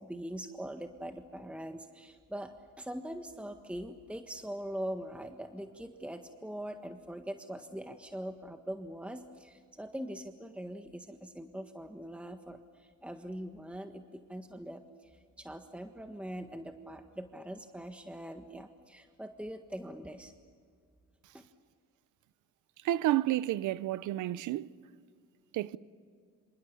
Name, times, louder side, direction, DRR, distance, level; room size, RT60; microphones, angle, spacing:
voice 1, 0.0-2.5 2.8-20.3, right 1 dB, 5° right, 1.6 m, -42 dB
voice 2, 22.8-24.7 25.5-25.8, right 14 dB, 85° right, 0.8 m, -30 dB
27.5 x 26.5 x 7.0 m
cardioid pair, 90°, 30 cm